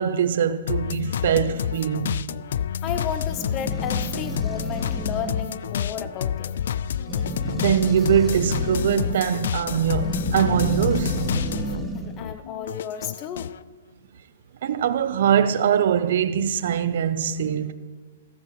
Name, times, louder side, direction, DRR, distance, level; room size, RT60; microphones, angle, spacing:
voice 1, 0.0-2.3 7.5-11.2 14.6-17.7, right 8 dB, 65° right, 0.8 m, -22 dB
sound 1, 0.7-11.9 12.2-13.6, left 9 dB, 70° left, 0.3 m, -29 dB
sound 2, 2.5-12.2, right 1 dB, 5° right, 1.4 m, -32 dB
voice 2, 2.8-6.6 11.9-13.5, left 8 dB, 30° left, 0.8 m, -33 dB
16.0 x 14.5 x 3.2 m
hypercardioid pair, 140°, 0 cm